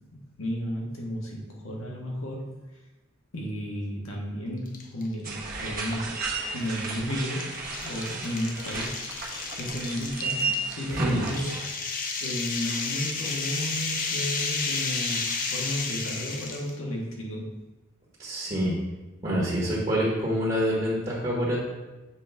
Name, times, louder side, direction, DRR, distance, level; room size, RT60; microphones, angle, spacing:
voice 1, 0.1-2.4 3.3-6.2 6.5-9.0 9.6-11.8 12.2-17.5, equal, 85° left, -2 dB, 1.6 m, -33 dB
sound 1, 4.7-5.1 5.5-5.6 6.6-16.7, left 4 dB, 45° left, 0.7 m, -32 dB
sound 2, 5.2-11.7, right 3 dB, 45° right, 1.2 m, -34 dB
voice 2, 10.9-11.2 18.2-18.7 19.2-21.6, equal, 30° right, -6 dB, 1.4 m, -26 dB
7.3 x 5.2 x 3.5 m, 1.1 s
head